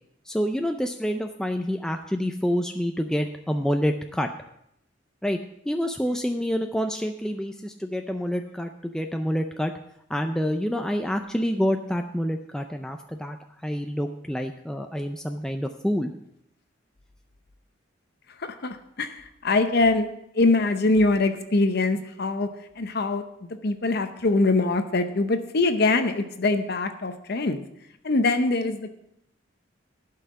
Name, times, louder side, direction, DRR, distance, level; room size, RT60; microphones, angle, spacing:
voice 1, 0.2-4.3 5.2-5.4 5.7-9.7 10.1-13.4 13.6-16.1, equal, 5° left, 5 dB, 0.4 m, -27 dB
voice 2, 18.4-20.1 20.3-22.5 22.8-23.2 23.6-27.6 28.0-28.9, left 3 dB, 55° left, 8 dB, 0.7 m, -23 dB
11.5 x 5.7 x 7.4 m, 0.78 s
head